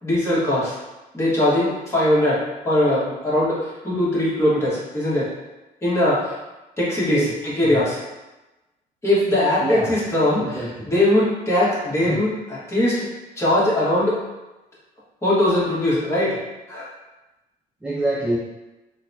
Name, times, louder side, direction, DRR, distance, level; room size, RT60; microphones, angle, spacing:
voice 1, 0.0-0.8 1.1-5.3 5.8-6.4 6.8-8.0 9.0-13.1 13.3-14.2 15.2-16.4 16.7-16.9, left 1 dB, 15° left, -8 dB, 1.4 m, -21 dB
voice 2, 9.6-9.9 10.4-10.9 12.1-12.2 17.8-18.4, right 1 dB, 5° right, -4 dB, 0.4 m, -25 dB
4.0 x 2.2 x 2.7 m, 1.1 s
cardioid pair, 110°, 17 cm